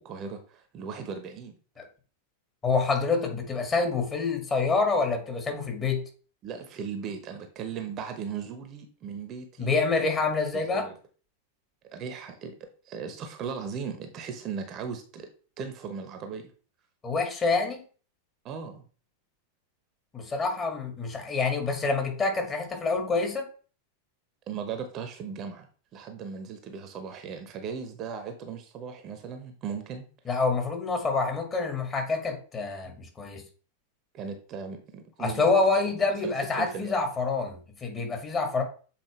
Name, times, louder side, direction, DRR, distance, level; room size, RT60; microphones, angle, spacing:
voice 1, 0.0-1.6 6.4-9.7 10.7-10.9 11.9-12.6 12.9-15.3 15.6-16.5 18.4-18.8 24.5-25.7 25.9-30.1 34.1-35.5 36.2-37.0, right 6 dB, 35° right, 7 dB, 1.0 m, -37 dB
voice 2, 2.6-6.0 9.6-10.9 17.0-17.8 20.1-23.5 30.3-33.4 35.2-38.6, left 4 dB, 20° left, 3 dB, 1.9 m, -27 dB
7.7 x 4.3 x 3.2 m, 0.39 s
figure-of-eight pair, 90°, 0 cm